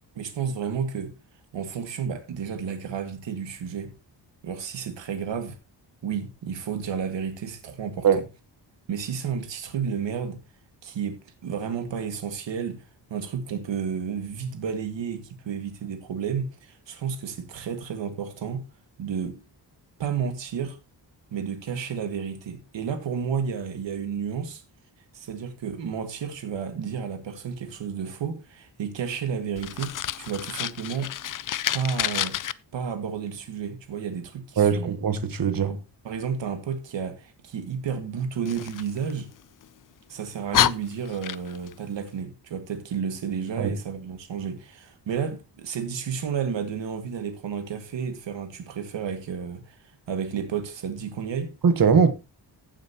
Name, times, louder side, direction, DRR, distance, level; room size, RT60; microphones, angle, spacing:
voice 1, 0.2-1.1 1.5-3.9 4.4-5.6 6.0-8.2 8.9-10.4 10.8-12.8 13.1-18.6 19.0-19.4 20.0-20.8 21.3-24.6 25.1-31.2 31.7-35.0 35.7-39.3 40.1-49.8 50.1-51.6, right 7 dB, 85° right, 2.1 m, -31 dB
Fire, 29.6-32.5 38.5-39.7 40.2-40.3 40.5-41.7, left 11 dB, 50° left, 0.5 m, -28 dB
voice 2, 34.6-35.7 43.6-43.7 51.6-52.1, right 6 dB, 50° right, 1.3 m, -20 dB
15.5 x 7.4 x 2.9 m
wide cardioid pair, 150°, 43 cm